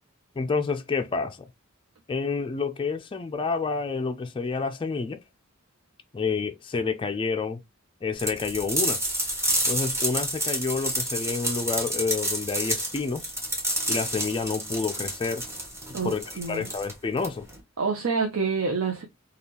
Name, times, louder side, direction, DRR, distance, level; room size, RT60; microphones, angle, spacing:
voice 1, 0.4-1.5 2.1-5.2 6.1-7.6 8.0-9.0 9.7-13.3 13.9-15.4 16.0-17.5, left 4 dB, 25° left, 0.3 m, -29 dB
sound 1, 8.2-17.6, right 1 dB, 15° right, 1.1 m, -29 dB
voice 2, 15.9-16.7 17.8-19.0, right 4 dB, 75° right, 0.6 m, -27 dB
3.5 x 2.3 x 2.8 m
head